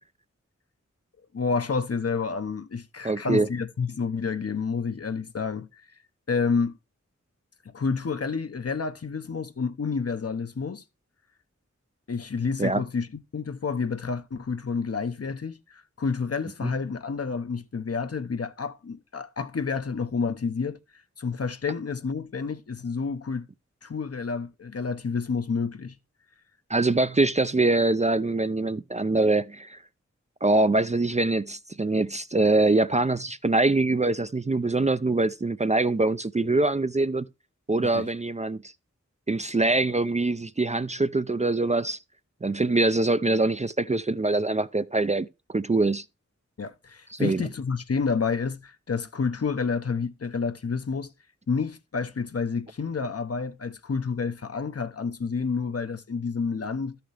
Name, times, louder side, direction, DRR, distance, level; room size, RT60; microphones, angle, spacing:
voice 1, 1.3-5.9 6.3-6.7 7.7-10.8 12.1-13.1 13.3-20.8 21.2-23.5 23.8-26.0 37.8-38.1 46.6-51.1 51.5-57.0, left 5 dB, 55° left, 0.8 m, -29 dB
voice 2, 3.0-3.5 12.6-12.8 16.6-16.7 26.7-29.8 30.4-37.3 37.7-38.6 39.3-42.0 42.4-46.0 47.1-47.4, right 2 dB, 25° right, 0.4 m, -24 dB
13.0 x 5.8 x 3.3 m
wide cardioid pair, 45°, 29 cm